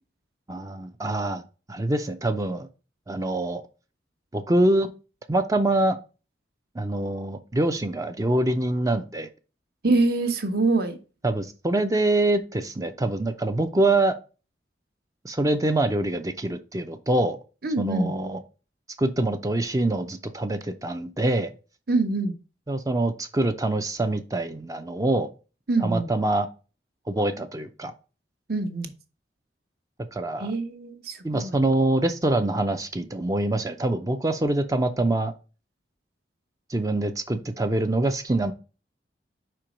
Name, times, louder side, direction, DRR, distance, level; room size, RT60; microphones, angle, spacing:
voice 1, 0.5-1.4 1.7-2.7 3.1-3.6 4.3-4.9 5.3-6.0 6.8-9.3 11.2-14.2 15.2-17.4 17.8-18.4 19.0-21.5 22.7-25.3 25.8-26.5 27.1-27.9 30.1-30.5 31.2-35.3 36.7-38.5, right 2 dB, 20° right, 0.4 m, -25 dB
voice 2, 9.8-11.0 17.6-18.1 21.9-22.3 25.7-26.1 28.5-28.9 30.4-31.5, right 3 dB, 55° right, 1.0 m, -25 dB
5.2 x 4.5 x 5.0 m
head